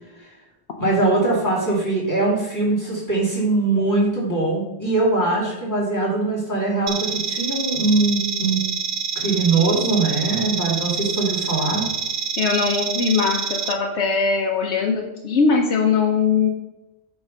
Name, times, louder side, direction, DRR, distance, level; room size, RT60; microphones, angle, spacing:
voice 1, 0.8-8.6 9.1-11.9, right 2 dB, 15° left, -7 dB, 2.8 m, -21 dB
sound 1, 6.9-13.7, right 6 dB, 85° right, 0.9 m, -27 dB
voice 2, 12.4-16.5, left 5 dB, 90° left, 0 dB, 1.1 m, -20 dB
8.2 x 3.7 x 5.4 m, 0.97 s
omnidirectional pair, 1.1 m